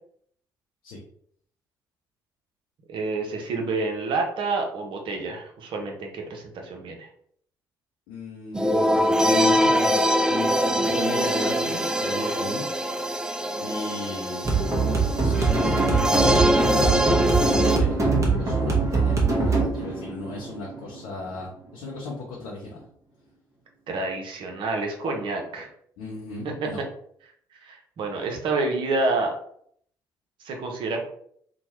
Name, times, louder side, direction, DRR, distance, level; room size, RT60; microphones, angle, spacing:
voice 1, 2.9-7.1 23.9-25.7 26.4-26.5 27.5-29.3 30.4-31.1, right 3 dB, 55° right, 2 dB, 0.7 m, -28 dB
voice 2, 8.1-12.7 13.6-14.7 15.2-22.8 26.0-26.8, left 3 dB, 70° left, -4 dB, 0.6 m, -35 dB
sound 1, 8.5-17.8, equal, 5° right, 0.3 m, -23 dB
sound 2, 14.4-21.4, right 4 dB, 30° right, 1.0 m, -23 dB
2.9 x 2.2 x 2.9 m, 0.64 s
hypercardioid pair, 45°, 10 cm